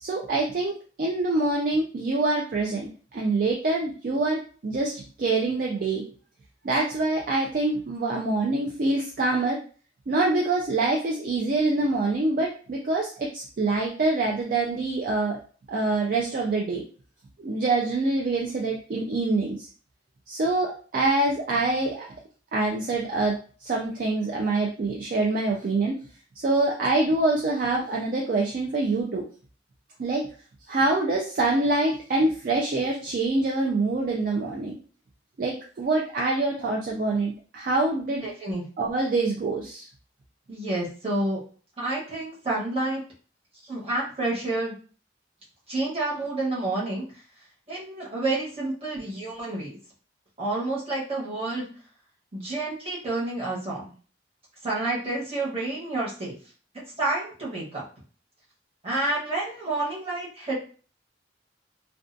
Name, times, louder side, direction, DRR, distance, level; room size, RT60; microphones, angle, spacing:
voice 1, 0.0-6.0 6.6-9.6 10.1-15.4 15.7-16.8 17.4-19.7 20.3-22.1 22.5-23.3 23.6-25.9 26.4-29.2 30.0-30.2 30.7-34.7 35.4-38.3 38.8-39.9, right 2 dB, 50° right, -1 dB, 0.4 m, -25 dB
voice 2, 38.2-38.6 40.5-41.4 41.8-43.0 43.7-44.7 45.7-47.0 47.7-49.8 50.4-51.7 52.3-53.9 54.6-56.3 57.0-57.8 58.8-60.5, right 2 dB, 30° right, -6 dB, 1.0 m, -29 dB
2.4 x 2.3 x 2.5 m, 0.40 s
head